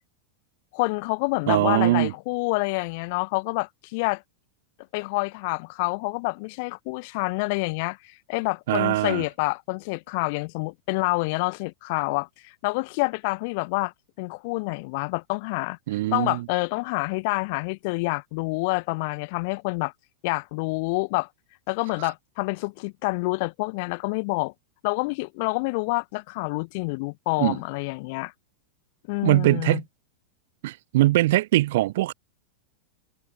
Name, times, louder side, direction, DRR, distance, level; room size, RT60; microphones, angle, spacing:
voice 1, 0.7-4.2 4.9-15.8 16.1-19.9 20.2-21.3 21.7-24.5 24.8-28.3 29.1-29.8, left 28 dB, 45° left, 1.0 m, -27 dB
voice 2, 1.5-2.1 8.7-9.2 15.9-16.4 27.4-27.6 29.2-29.8 30.6-32.1, right 16 dB, 55° right, 0.5 m, -21 dB
figure-of-eight pair, 90°, 0 cm